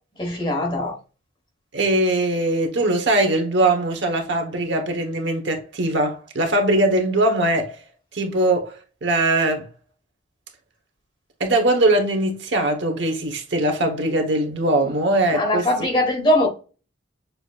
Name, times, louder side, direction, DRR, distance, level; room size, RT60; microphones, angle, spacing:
voice 1, 0.2-0.9 15.3-16.5, left 1 dB, 25° left, 1.1 m, -21 dB
voice 2, 1.7-7.8 8.1-9.7 11.4-15.9, right 1 dB, 70° right, 1.0 m, -21 dB
6.8 x 2.8 x 2.3 m
head